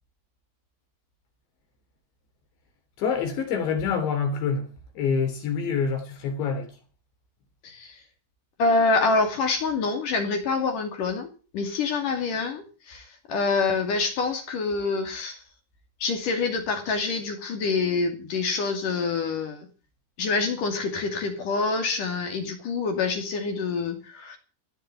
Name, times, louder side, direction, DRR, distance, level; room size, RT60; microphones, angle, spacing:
voice 1, 3.0-4.7 5.0-6.7, left 6 dB, 65° left, 5.4 m, -26 dB
voice 2, 7.6-8.0 8.6-15.4 16.0-19.7 20.2-24.4, left 4 dB, 50° left, 3.6 m, -26 dB
17.0 x 6.6 x 9.6 m
omnidirectional pair, 5.8 m